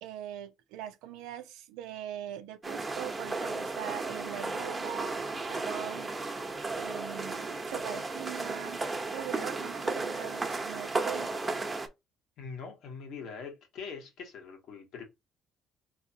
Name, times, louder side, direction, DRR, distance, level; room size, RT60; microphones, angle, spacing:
voice 1, 0.0-6.3 6.8-11.3, right 12 dB, 85° right, 0.6 m, -42 dB
sound 1, 2.6-11.9, right 3 dB, 25° right, 1.1 m, -34 dB
voice 2, 12.4-15.0, left 5 dB, 70° left, 1.5 m, -43 dB
4.0 x 3.1 x 2.9 m
supercardioid pair, 70°, 0 cm